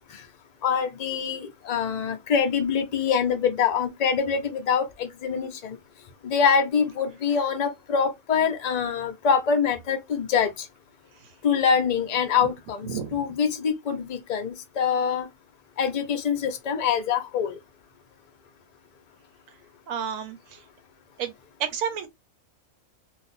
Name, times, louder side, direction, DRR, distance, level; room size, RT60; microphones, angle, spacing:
voice 1, 0.6-5.8 6.2-10.7 11.4-15.3 15.8-17.6, left 6 dB, 40° left, 0.6 m, -25 dB
voice 2, 19.9-20.4 21.2-21.3 21.6-22.1, right 8 dB, 80° right, 1.1 m, -29 dB
2.5 x 2.4 x 4.0 m
omnidirectional pair, 1.4 m